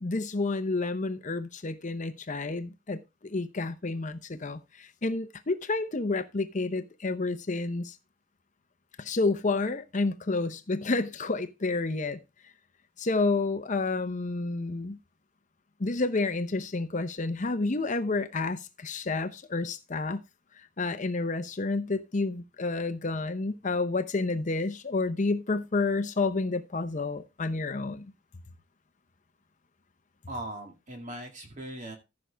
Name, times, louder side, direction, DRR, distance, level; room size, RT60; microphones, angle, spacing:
voice 1, 0.0-8.0 9.0-12.2 13.0-15.0 15.8-20.2 20.8-28.1, left 3 dB, 40° left, 0.7 m, -30 dB
voice 2, 30.3-32.0, right 1 dB, 40° right, 2.0 m, -39 dB
14.5 x 6.2 x 3.4 m
head